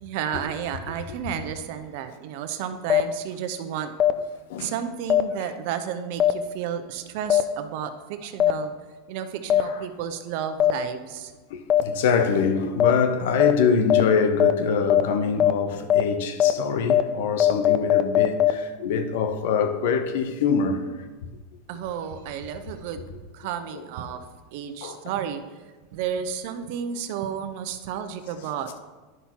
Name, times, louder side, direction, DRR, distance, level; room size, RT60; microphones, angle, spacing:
voice 1, 0.0-3.9 4.6-8.7 9.1-11.3 21.7-23.0 23.3-24.3 24.5-25.4 25.9-28.8, right 8 dB, 65° right, 0.7 m, -32 dB
sound 1, 2.9-3.0 4.0-4.1 5.1-5.2 6.2-6.3 7.3-7.4 8.4-8.5 9.5-9.6 10.6-10.7 11.7-11.8 12.8-12.9 13.4-13.5 13.9-14.0 14.4-14.5 14.9-15.0 15.4-15.5 15.9-16.0 16.4-16.5 16.9-17.0 17.4-18.5, left 11 dB, 35° left, 0.5 m, -18 dB
voice 2, 11.5-20.9 23.7-23.8 24.8-25.0, left 6 dB, 70° left, 0.8 m, -24 dB
11.0 x 5.8 x 2.9 m
hypercardioid pair, 105°, 0 cm